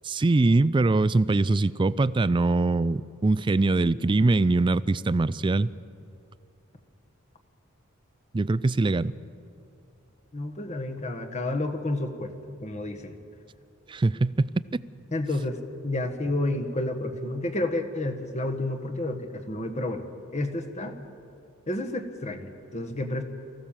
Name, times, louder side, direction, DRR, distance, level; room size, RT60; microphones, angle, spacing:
voice 1, 0.0-5.7 8.3-9.1 13.9-14.5, right 2 dB, 25° right, 17 dB, 0.4 m, -23 dB
voice 2, 10.3-13.1 15.1-15.6 15.8-20.0 20.3-21.0 21.7-23.2, left 2 dB, 35° left, 5 dB, 1.5 m, -30 dB
23.5 x 15.5 x 7.3 m, 2.6 s
head